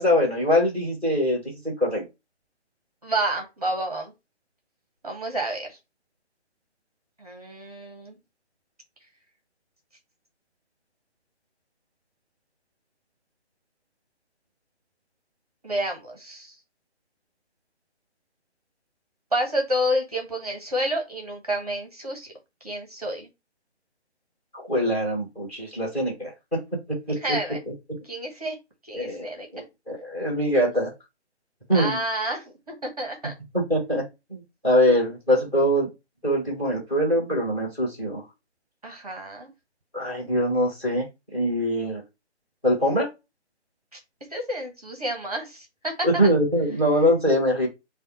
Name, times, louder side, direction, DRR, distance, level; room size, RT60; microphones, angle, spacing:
voice 1, 0.0-2.0 24.5-26.3 27.1-27.2 28.9-29.3 29.5-30.9 31.7-32.0 33.7-34.0 34.3-35.9 36.2-38.2 39.9-41.0 41.3-42.0 42.6-43.1 46.0-47.7, equal, 10° left, -1 dB, 1.1 m, -23 dB
voice 2, 3.0-4.1 5.0-5.8 7.2-8.2 15.6-16.5 19.3-22.3 22.6-23.3 27.1-27.6 28.0-28.5 28.8-29.5 31.7-33.3 38.8-39.5 44.3-46.3, right 1 dB, 35° right, 3 dB, 0.8 m, -29 dB
3.4 x 2.1 x 2.9 m, 0.24 s
figure-of-eight pair, 150°, 35 cm